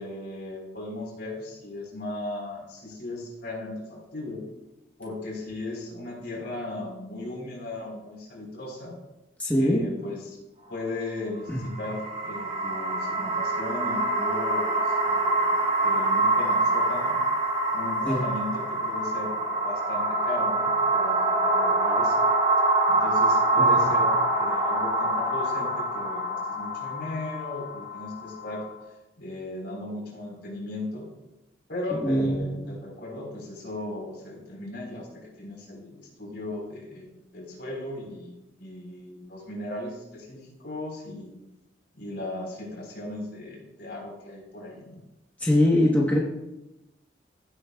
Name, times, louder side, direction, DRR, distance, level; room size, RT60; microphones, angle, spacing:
voice 1, 0.0-4.4 5.0-9.0 9.5-10.4 10.7-15.5 15.8-17.2 17.7-22.2 22.9-28.7 29.2-31.1 31.7-41.3 42.0-45.0, left 2 dB, 65° left, -2 dB, 4.0 m, -37 dB
voice 2, 9.4-9.8 11.5-11.6 18.1-18.2 23.6-23.9 32.0-32.7 45.4-46.2, left 1 dB, 10° left, -4 dB, 1.1 m, -23 dB
sound 1, 11.5-28.6, right 2 dB, 35° right, 3.3 m, -25 dB
15.5 x 8.2 x 2.3 m, 0.95 s
head